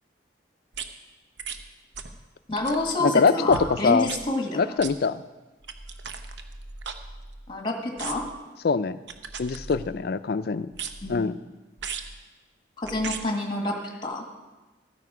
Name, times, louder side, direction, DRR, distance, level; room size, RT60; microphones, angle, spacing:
sound 1, 0.7-0.9 1.4-1.6 1.9-2.2 2.5-2.9 3.5-3.7 4.0-4.2 4.8-4.9 5.6-7.5 8.0-8.4 9.1-10.0 10.7-11.2 11.8-12.1 12.8-13.2 14.0-14.1, right 5 dB, 75° right, 0.8 m, -37 dB
voice 1, 2.5-4.6 7.5-8.3 11.0-11.3 12.8-14.3, left 2 dB, 25° left, 2 dB, 1.7 m, -28 dB
voice 2, 3.0-4.1 4.5-5.2 8.6-9.0 9.4-10.7 11.1-11.4, left 5 dB, 55° left, 14 dB, 0.4 m, -23 dB
13.0 x 9.4 x 4.9 m, 1.2 s
head